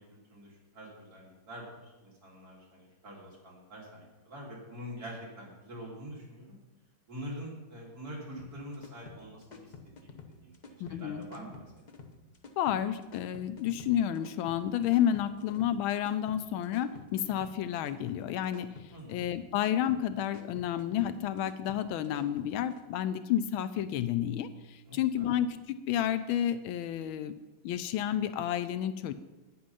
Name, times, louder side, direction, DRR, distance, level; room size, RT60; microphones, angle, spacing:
voice 1, 0.0-6.6 7.1-9.7 10.0-11.6 18.9-19.2 24.9-25.3, equal, 45° right, -3 dB, 3.1 m, -45 dB
sound 1, 8.4-22.8, left 5 dB, 65° left, 0.4 m, -50 dB
voice 2, 10.8-11.2 12.6-18.7 19.1-27.3 27.6-29.1, left 10 dB, 85° left, 12 dB, 1.4 m, -30 dB
9.5 x 8.6 x 5.5 m, 1.1 s
omnidirectional pair, 2.2 m